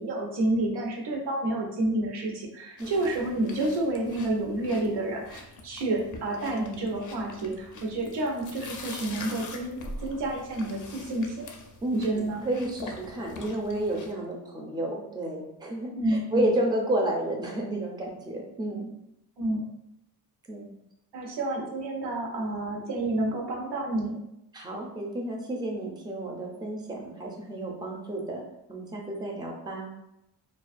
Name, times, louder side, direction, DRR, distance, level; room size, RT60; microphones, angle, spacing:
voice 1, 0.0-11.5 11.9-12.4 15.9-16.6 19.4-19.6 21.1-24.2, right 2 dB, 90° right, 0 dB, 0.6 m, -29 dB
sound 1, 2.8-14.1, left 2 dB, 50° left, 0.4 m, -44 dB
voice 2, 11.8-18.9 20.5-20.7 24.5-28.4 28.7-29.9, right 1 dB, 10° right, 0 dB, 0.4 m, -31 dB
2.3 x 2.2 x 2.4 m, 0.83 s
wide cardioid pair, 105°, 39 cm